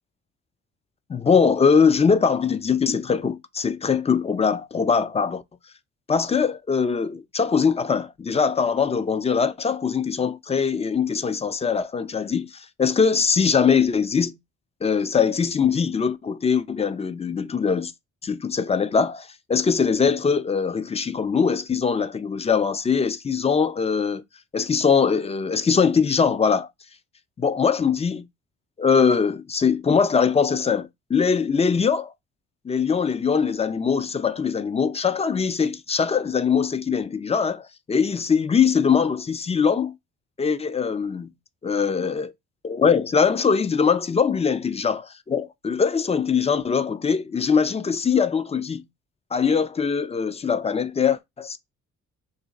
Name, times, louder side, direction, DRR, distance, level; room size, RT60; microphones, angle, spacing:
voice 1, 1.1-5.4 6.1-14.4 14.8-17.9 18.2-24.2 24.5-26.7 27.4-28.2 28.8-32.1 32.7-39.9 40.4-41.3 41.6-42.3 42.6-48.9 49.3-51.6, left 6 dB, 20° left, 0.3 m, -22 dB
3.1 x 2.6 x 3.9 m
cardioid pair, 90°, 30 cm